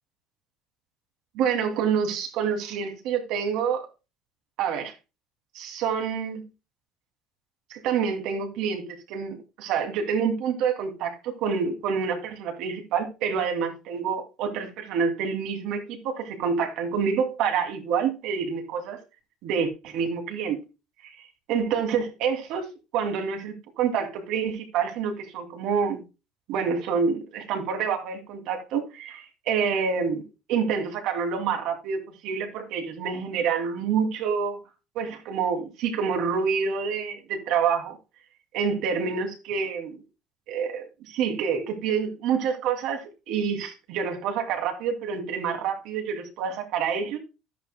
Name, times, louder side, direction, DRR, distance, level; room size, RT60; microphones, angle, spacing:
voice 1, 1.3-3.9 4.6-4.9 5.5-6.4 7.7-8.8 9.1-19.0 19.4-20.6 21.5-22.7 22.9-26.0 26.5-30.2 30.5-34.6 34.9-38.0 38.5-40.0 40.5-47.2, right 6 dB, 70° right, 2.5 m, -27 dB
12.0 x 10.0 x 2.2 m
cardioid pair, 140°, 0 cm